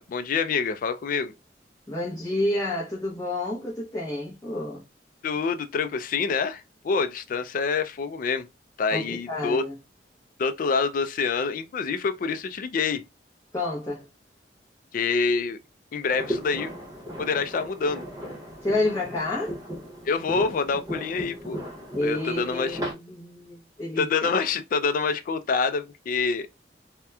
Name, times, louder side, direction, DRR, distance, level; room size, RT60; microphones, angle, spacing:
voice 1, 0.0-1.3 5.2-8.5 8.8-9.7 10.4-13.0 14.9-15.6 15.9-16.7 17.2-18.1 20.1-21.6 22.0-22.8 24.0-26.5, left 5 dB, 50° left, 0.3 m, -26 dB
voice 2, 1.9-4.8 8.9-9.8 13.5-14.1 18.6-19.6 21.9-24.3, left 2 dB, 15° left, 0.7 m, -29 dB
sound 1, 16.1-22.9, equal, 20° right, 0.9 m, -36 dB
2.8 x 2.1 x 2.2 m
head